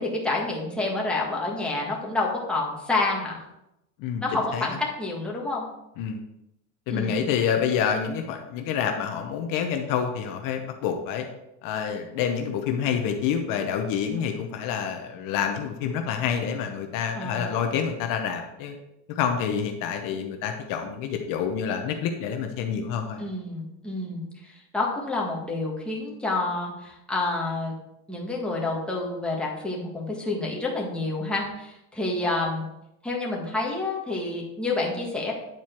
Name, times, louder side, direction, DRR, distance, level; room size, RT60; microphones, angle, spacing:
voice 1, 0.0-3.4 4.2-5.6 6.9-7.2 14.1-14.2 17.1-17.7 23.2-27.7 28.1-32.7 33.0-35.3, left 2 dB, 5° left, -4 dB, 1.7 m, -29 dB
voice 2, 6.9-11.2 11.6-18.8 19.1-23.2, left 7 dB, 55° left, 4 dB, 1.0 m, -27 dB
9.3 x 4.6 x 4.5 m, 0.86 s
cardioid pair, 140°, 38 cm